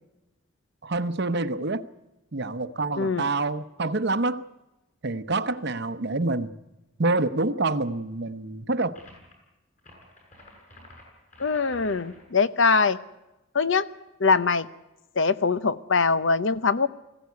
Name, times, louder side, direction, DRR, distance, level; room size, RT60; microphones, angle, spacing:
voice 1, 0.8-1.9 2.3-4.4 5.0-6.5 7.0-9.0, right 2 dB, 50° right, 12 dB, 0.9 m, -27 dB
voice 2, 3.0-3.3 11.4-13.0 13.5-13.9 14.2-14.7 15.2-16.9, left 4 dB, 60° left, 15 dB, 0.8 m, -22 dB
sound 1, 8.9-9.3 9.8-12.3, left 1 dB, 35° left, 7.5 m, -49 dB
20.5 x 16.0 x 9.5 m, 1.0 s
head